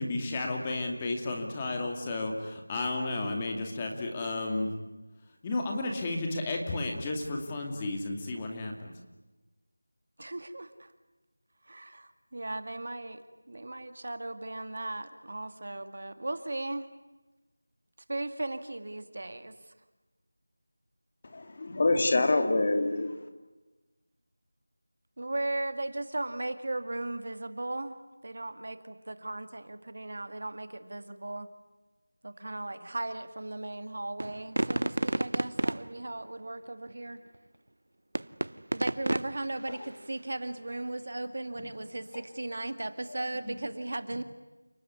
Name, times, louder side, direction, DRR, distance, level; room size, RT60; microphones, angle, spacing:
voice 1, 0.0-4.7 5.4-8.9, left 2 dB, 15° left, 2.4 m, -32 dB
voice 2, 10.2-10.9 11.7-16.9 18.1-19.5 25.2-27.9 28.2-31.5 32.2-37.2 38.7-44.2, right 2 dB, 50° right, 2.1 m, -37 dB
voice 3, 21.3-23.2 39.7-39.8, left 2 dB, 30° left, 2.4 m, -26 dB
sound 1, 34.2-35.9 38.2-39.4, right 1 dB, 70° right, 0.8 m, -29 dB
30.0 x 19.5 x 9.7 m
figure-of-eight pair, 175°, 0 cm